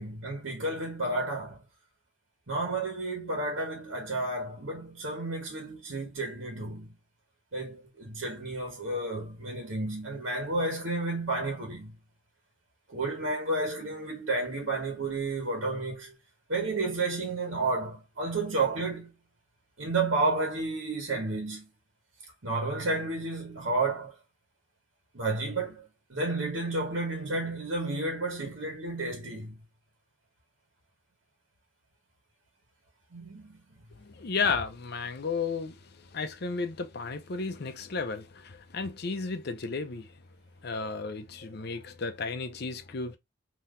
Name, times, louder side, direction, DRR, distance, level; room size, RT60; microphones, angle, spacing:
voice 1, 0.0-1.6 2.5-6.9 7.5-11.9 12.9-16.1 16.5-19.1 19.8-21.7 22.4-24.1 25.1-29.6 33.1-33.6, right 2 dB, 80° right, 1.4 m, -31 dB
voice 2, 34.0-40.1 40.6-43.2, left 4 dB, 55° left, 0.6 m, -33 dB
3.8 x 2.9 x 2.5 m
head